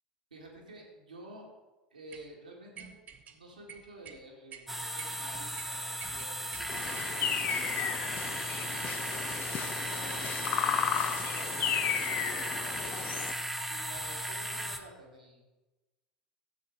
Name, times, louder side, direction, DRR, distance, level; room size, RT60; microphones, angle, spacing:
voice 1, 0.3-1.5 1.9-2.9 3.3-7.9 8.7-12.9 13.6-15.4, right 2 dB, 80° right, -1 dB, 2.1 m, -51 dB
sound 1, 2.1-2.3 2.8-3.4 3.7-4.2 4.5-4.6 5.0-5.2 5.6-5.7 6.0-7.1 7.5-7.7, right 7 dB, 35° right, 0.9 m, -47 dB
sound 2, 4.7-14.8, right 1 dB, 5° right, 0.9 m, -36 dB
sound 3, 6.7-13.3, left 9 dB, 40° left, 0.6 m, -34 dB
13.0 x 7.8 x 3.7 m, 1.1 s
figure-of-eight pair, 75°, 4 cm